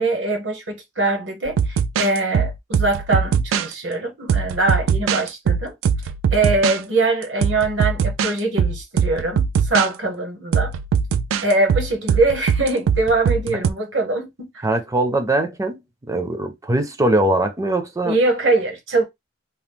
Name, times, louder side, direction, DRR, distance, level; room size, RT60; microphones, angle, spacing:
voice 1, 0.0-5.7 6.3-10.7 11.4-14.7 18.0-19.0, right 2 dB, 70° right, 1.0 m, -22 dB
sound 1, 1.5-3.7 4.3-6.8 7.4-8.3 8.6-9.9 10.5-13.7, right 6 dB, 85° right, 0.3 m, -21 dB
voice 2, 14.6-15.8 16.1-18.2, right 1 dB, 15° right, 0.4 m, -21 dB
2.9 x 2.0 x 3.4 m
head